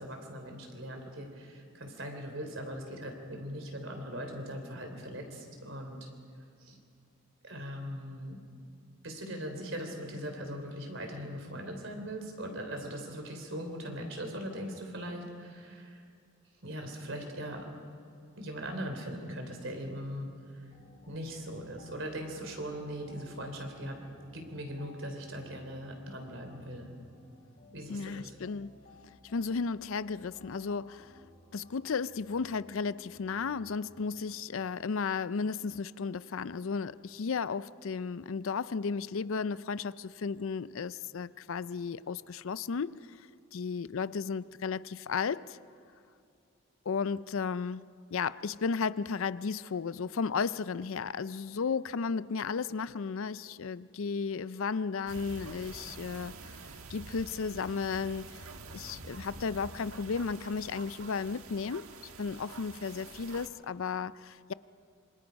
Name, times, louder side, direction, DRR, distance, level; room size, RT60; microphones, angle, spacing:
voice 1, 0.0-6.1 6.6-6.8 7.4-8.4 9.0-16.0 16.6-17.6 18.4-20.6 21.1-24.0 24.3-26.9 27.7-28.4, equal, 60° right, 3.7 m, -40 dB
sound 1, 20.7-34.1, left 1 dB, 35° left, 4.0 m, -58 dB
voice 2, 27.9-28.7 29.2-31.1 31.5-45.6 46.9-56.5 56.9-58.4 58.7-61.9 62.2-64.5, left 5 dB, 65° left, 0.5 m, -34 dB
sound 2, 55.1-63.5, right 3 dB, 80° right, 1.5 m, -47 dB
26.5 x 25.5 x 5.3 m
head